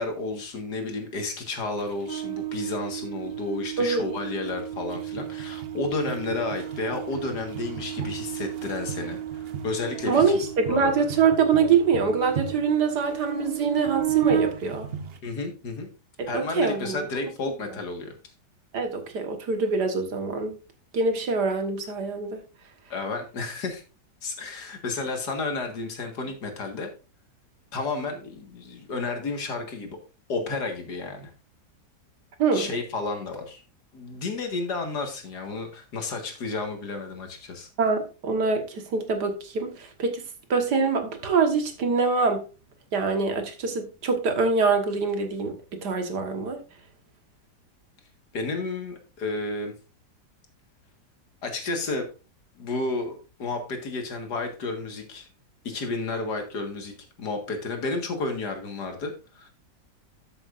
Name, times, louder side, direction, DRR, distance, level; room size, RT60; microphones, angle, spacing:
voice 1, 0.0-10.4 10.7-11.1 15.2-15.9 16.3-18.1 22.9-23.8 24.2-26.9 27.7-30.0 30.3-31.3 32.5-33.6 33.9-37.7 48.3-49.7 51.4-52.1 52.6-55.3 55.6-59.5, left 3 dB, 65° left, 2.3 m, -32 dB
sound 1, 1.8-15.2, right 10 dB, 50° right, 0.7 m, -32 dB
voice 2, 10.1-14.9 16.2-17.0 18.7-20.6 20.9-22.4 32.4-32.7 37.8-40.2 40.5-42.4 42.9-46.6, right 5 dB, 70° right, 2.0 m, -24 dB
13.0 x 7.0 x 2.5 m
omnidirectional pair, 1.9 m